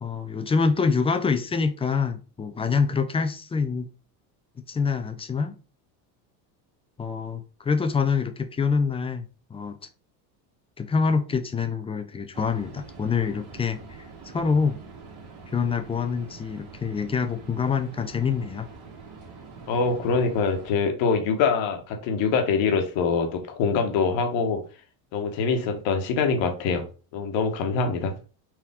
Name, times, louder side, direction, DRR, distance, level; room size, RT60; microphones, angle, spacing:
voice 1, 0.0-3.9 4.7-5.6 7.0-9.8 10.8-13.8 14.3-14.8 15.5-18.7, left 5 dB, 15° left, 0.3 m, -25 dB
sound 1, 12.3-20.8, right 4 dB, 50° right, 1.7 m, -45 dB
voice 2, 19.7-24.6 25.1-26.8 27.1-28.1, left 5 dB, 65° left, 1.3 m, -24 dB
4.7 x 2.7 x 3.5 m
supercardioid pair, 100°, 49 cm